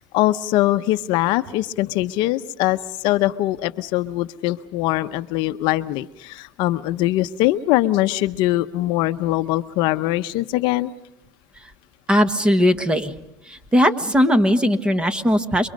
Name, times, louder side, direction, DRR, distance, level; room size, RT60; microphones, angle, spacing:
voice 1, 0.0-10.9, left 16 dB, 55° left, 11 dB, 0.8 m, -22 dB
voice 2, 12.1-13.1 13.5-15.7, equal, 10° right, 10 dB, 1.4 m, -18 dB
28.5 x 23.5 x 5.3 m, 0.85 s
supercardioid pair, 125°, 9 cm